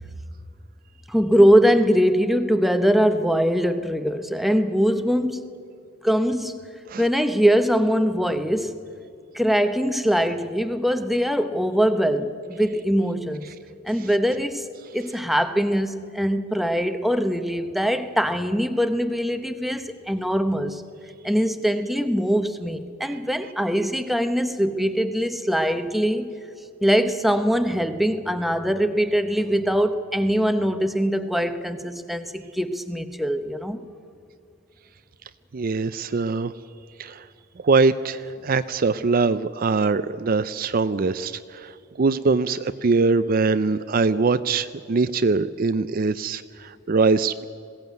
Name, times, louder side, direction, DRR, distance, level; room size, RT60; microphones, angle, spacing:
voice 1, 1.1-5.4 6.0-6.6 7.0-8.8 9.3-13.5 13.8-14.7 14.9-20.8 21.2-26.3 26.8-33.8, equal, ahead, 9 dB, 0.8 m, -22 dB
voice 2, 35.5-36.5 37.0-37.3 37.6-47.4, right 4 dB, 45° right, 13 dB, 0.4 m, -22 dB
21.0 x 16.0 x 9.4 m, 2.4 s
head